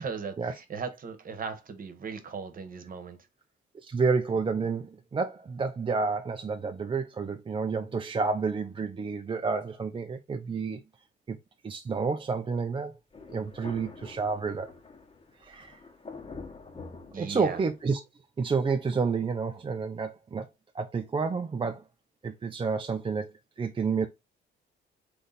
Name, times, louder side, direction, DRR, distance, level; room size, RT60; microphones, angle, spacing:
voice 1, 0.0-3.2 17.1-17.6, right 5 dB, 45° right, 1.2 m, -37 dB
voice 2, 3.8-10.8 11.3-11.4 11.6-12.9 13.3-14.7 15.4-15.8 17.2-18.0 18.4-20.5 20.7-21.8 22.2-24.1, right 4 dB, 25° right, 0.5 m, -30 dB
Thunder, 13.1-17.9, left 4 dB, 30° left, 1.1 m, -46 dB
3.8 x 3.3 x 4.0 m
cardioid pair, 90°, 20 cm